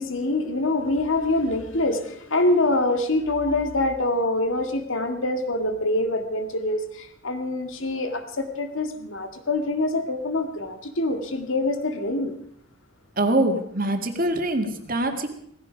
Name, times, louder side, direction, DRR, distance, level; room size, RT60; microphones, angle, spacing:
voice 1, 0.0-12.4, left 2 dB, 75° left, 6 dB, 2.0 m, -25 dB
voice 2, 13.2-15.3, right 1 dB, 45° right, 5 dB, 2.0 m, -24 dB
17.5 x 15.5 x 5.1 m, 0.66 s
head